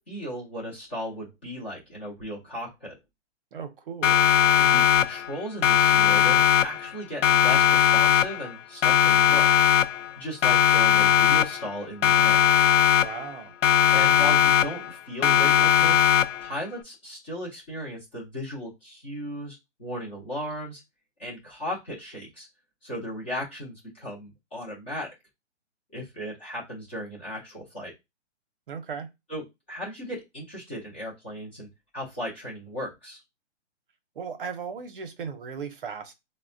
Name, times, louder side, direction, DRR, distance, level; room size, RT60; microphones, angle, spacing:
voice 1, 0.1-3.0 4.6-9.7 10.1-12.4 13.9-16.1 16.4-20.8 21.2-22.5 22.8-25.1 25.9-27.9 29.3-33.2, equal, 10° left, 0.5 m, -36 dB
voice 2, 3.5-4.3 13.0-13.5 28.7-29.1 34.2-36.1, right 6 dB, 45° right, 0.7 m, -36 dB
Siren, 4.0-5.3 5.6-6.9 7.2-8.5 8.8-10.1 10.4-11.7 12.0-13.3 13.6-14.9 15.2-16.5, left 9 dB, 85° left, 0.5 m, -20 dB
3.9 x 2.1 x 2.5 m
hypercardioid pair, 155°, 36 cm